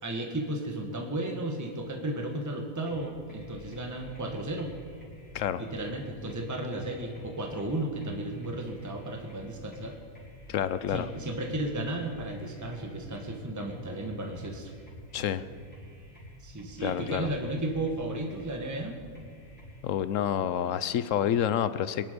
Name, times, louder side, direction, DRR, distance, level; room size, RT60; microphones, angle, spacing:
voice 1, 0.0-4.7 5.6-10.0 10.9-14.7 16.4-19.0, right 1 dB, 10° right, 2 dB, 1.4 m, -34 dB
sound 1, 2.9-19.8, equal, 5° left, 4.6 m, -49 dB
voice 2, 10.5-11.1 15.1-15.4 16.8-17.3 19.8-22.0, left 9 dB, 65° left, 14 dB, 0.9 m, -28 dB
23.0 x 11.0 x 5.2 m, 2.1 s
omnidirectional pair, 1.5 m